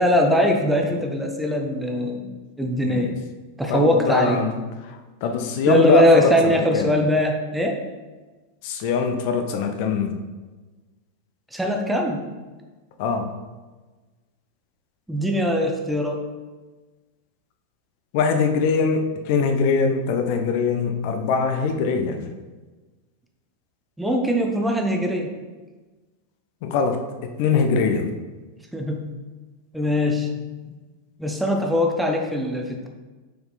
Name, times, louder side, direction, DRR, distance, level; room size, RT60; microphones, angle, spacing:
voice 1, 0.0-2.3 2.6-3.1 3.6-4.4 5.7-7.8 11.5-12.3 15.1-16.2 24.0-25.3 28.7-29.2 29.7-30.4 31.2-32.9, equal, 5° right, 2 dB, 0.8 m, -21 dB
voice 2, 2.8-3.1 3.7-4.6 4.8-7.0 8.6-10.2 13.0-13.3 18.1-22.3 26.6-28.1 30.6-30.7, left 5 dB, 45° left, 5 dB, 0.8 m, -23 dB
6.6 x 4.5 x 4.0 m, 1.3 s
figure-of-eight pair, 90°, 0 cm